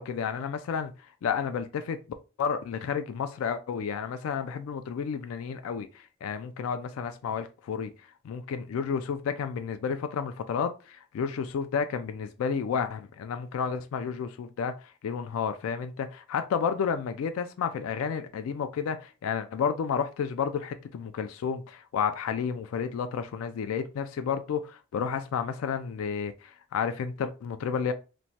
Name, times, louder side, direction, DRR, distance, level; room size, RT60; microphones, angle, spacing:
voice 1, 0.0-2.0 2.4-27.9, left 6 dB, 75° left, 0.3 m, -31 dB
3.0 x 2.1 x 2.7 m
head